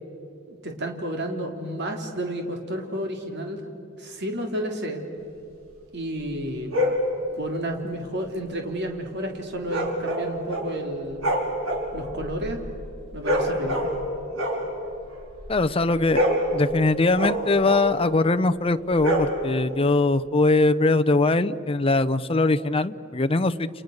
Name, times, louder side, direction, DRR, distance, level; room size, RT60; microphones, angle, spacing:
voice 1, 0.5-3.7 4.0-5.0 5.9-6.7 7.4-11.3 11.9-12.6 13.1-14.0, right 1 dB, 55° right, 3 dB, 3.5 m, -31 dB
sound 1, 6.7-7.1 9.7-10.8 11.1-14.1 14.3-15.6 15.9-18.0 18.9-19.7, equal, 80° right, 5.4 m, -26 dB
voice 2, 15.5-16.2 16.5-23.7, left 2 dB, 30° left, 9 dB, 0.7 m, -21 dB
30.0 x 29.5 x 6.6 m, 2.7 s
head